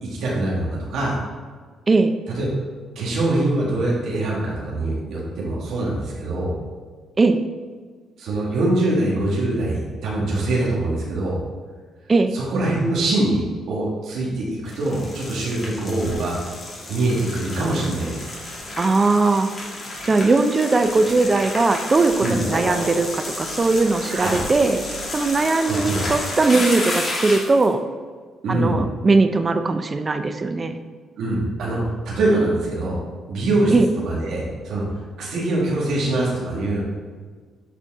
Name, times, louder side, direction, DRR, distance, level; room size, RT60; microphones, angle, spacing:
voice 1, 0.0-1.2 2.3-2.5 3.0-6.5 8.2-11.4 12.3-16.4 16.9-18.3 22.2-22.4 24.1-24.4 25.6-26.1 28.4-28.8 31.2-31.8 32.1-33.0 33.3-33.7 34.0-36.8, right 2 dB, 75° right, -5 dB, 1.7 m, -23 dB
sound 1, 14.7-27.7, left 1 dB, 40° left, 1.9 m, -31 dB
voice 2, 18.8-19.5 20.0-24.9 25.1-27.8 28.5-30.8 33.7-33.9, right 3 dB, 30° right, 9 dB, 0.5 m, -19 dB
8.1 x 4.2 x 3.6 m, 1.5 s
cardioid pair, 90°, 0 cm